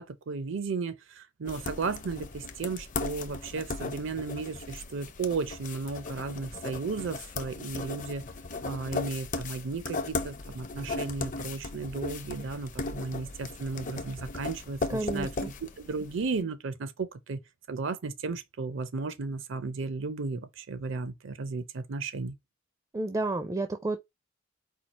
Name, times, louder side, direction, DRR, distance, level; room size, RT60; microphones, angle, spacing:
voice 1, 0.0-8.2 8.6-15.3 15.6-17.4 17.7-22.4, right 4 dB, 65° right, 0.5 m, -34 dB
sound 1, 1.5-16.3, left 3 dB, 40° left, 0.6 m, -37 dB
voice 2, 14.9-15.5 22.9-24.0, right 2 dB, 15° right, 0.4 m, -31 dB
4.5 x 2.4 x 4.0 m
head